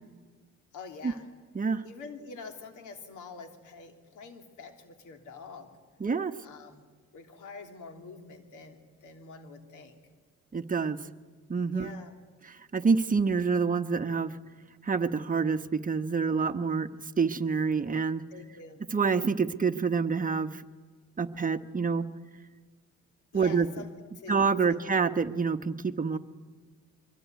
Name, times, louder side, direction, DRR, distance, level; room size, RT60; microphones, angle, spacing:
voice 1, 0.7-1.3 1.8-5.7 6.4-6.9 7.1-10.0 11.7-12.1 18.3-18.8 23.3-24.4 24.7-24.8, left 4 dB, 80° left, 5 dB, 3.1 m, -46 dB
voice 2, 6.0-6.3 10.5-11.0 11.5-11.9 12.4-14.4 14.8-16.9 17.2-18.2 18.9-20.6 21.2-22.1 23.3-23.7 24.3-26.2, right 5 dB, 25° right, 8 dB, 1.2 m, -27 dB
24.0 x 22.5 x 9.4 m, 1.5 s
cardioid pair, 90°, 30 cm